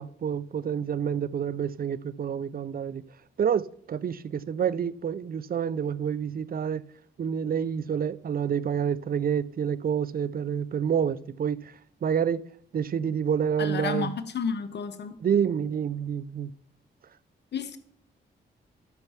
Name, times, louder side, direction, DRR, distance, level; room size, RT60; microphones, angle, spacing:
voice 1, 0.0-3.0 3.4-6.8 7.2-11.6 12.0-12.4 12.7-14.1 15.2-16.5, right 8 dB, 50° right, 0.5 m, -28 dB
voice 2, 13.6-15.2 17.5-17.8, left 5 dB, 65° left, 1.0 m, -31 dB
12.0 x 5.7 x 5.8 m
cardioid pair, 60°, 19 cm